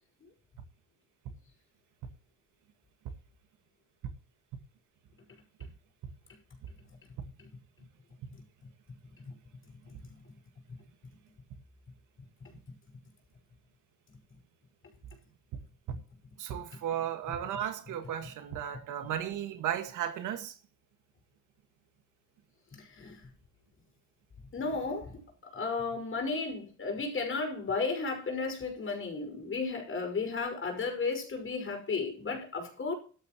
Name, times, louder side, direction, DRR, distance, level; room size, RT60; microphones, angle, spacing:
voice 1, 16.4-20.5, right 10 dB, 85° right, 1.9 m, -35 dB
voice 2, 22.7-23.3 24.5-32.9, left 4 dB, 40° left, 5.7 m, -34 dB
14.5 x 12.5 x 3.1 m
cardioid pair, 90°, 30 cm